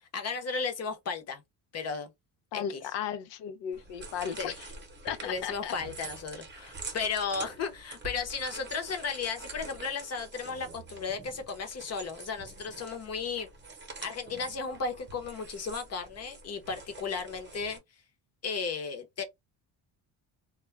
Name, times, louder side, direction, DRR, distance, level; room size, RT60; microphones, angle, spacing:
voice 1, 0.1-1.4 1.7-2.1 2.5-2.8 4.4-4.5 5.2-13.5 14.0-17.8 18.4-19.2, left 5 dB, 40° left, 0.7 m, -34 dB
voice 2, 2.5-4.7 5.0-5.7, left 8 dB, 85° left, 0.6 m, -35 dB
sound 1, 3.7-17.8, right 3 dB, 25° right, 0.8 m, -46 dB
2.3 x 2.1 x 3.1 m
cardioid pair, 150°, 41 cm